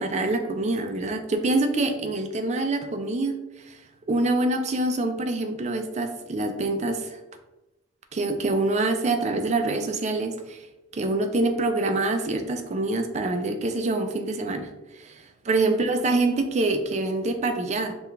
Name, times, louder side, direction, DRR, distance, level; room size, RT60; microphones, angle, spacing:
voice 1, 0.0-3.8 4.1-7.2 8.1-10.6 10.9-14.7 14.9-17.9, right 2 dB, 35° right, 6 dB, 0.4 m, -25 dB
4.9 x 2.3 x 3.3 m, 1.0 s
head